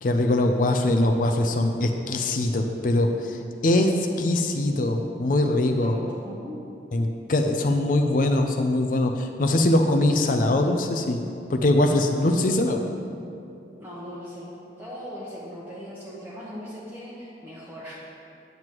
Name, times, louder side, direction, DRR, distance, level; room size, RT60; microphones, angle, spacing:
voice 1, 0.0-5.9 6.9-11.2 11.5-12.8, left 1 dB, 45° left, 5 dB, 0.4 m, -22 dB
voice 2, 5.8-6.6 7.8-8.1 12.1-12.5 13.8-14.5 14.8-18.0, equal, 10° right, -7 dB, 0.9 m, -39 dB
9.1 x 7.8 x 3.0 m, 2.6 s
head